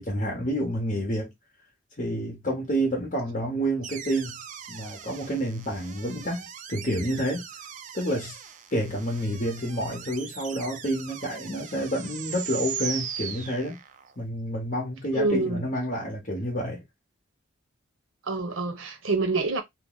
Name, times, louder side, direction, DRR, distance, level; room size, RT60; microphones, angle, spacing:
voice 1, 0.0-1.3 2.0-4.4 4.7-7.5 7.9-8.4 8.7-13.8 14.2-16.8, equal, 40° left, 0.9 m, -29 dB
sound 1, 3.8-14.1, right 8 dB, 40° right, 0.3 m, -39 dB
voice 2, 15.1-15.7 18.3-19.6, right 3 dB, 80° right, 0.8 m, -26 dB
2.6 x 2.0 x 3.7 m
head